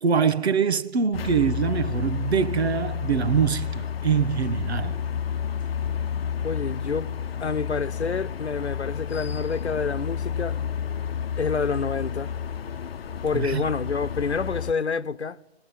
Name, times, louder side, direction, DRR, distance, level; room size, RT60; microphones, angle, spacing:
voice 1, 0.0-5.0 13.3-13.6, right 6 dB, 75° right, 1.1 m, -24 dB
sound 1, 1.1-14.7, left 8 dB, 60° left, 0.9 m, -31 dB
voice 2, 6.4-7.1 7.4-10.6 11.4-12.3 13.2-15.4, left 5 dB, 85° left, 1.0 m, -28 dB
25.0 x 20.5 x 9.3 m
figure-of-eight pair, 135°, 33 cm